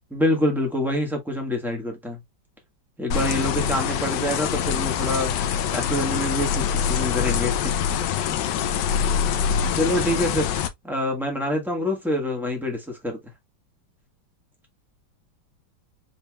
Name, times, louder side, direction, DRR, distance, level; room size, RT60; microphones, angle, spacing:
voice 1, 0.1-2.2 3.0-5.3 5.7-8.4 9.7-10.5 10.8-13.3, left 1 dB, ahead, 1.3 m, -26 dB
sound 1, 3.1-10.7, left 8 dB, 75° left, 1.2 m, -24 dB
5.5 x 3.5 x 2.3 m
omnidirectional pair, 2.1 m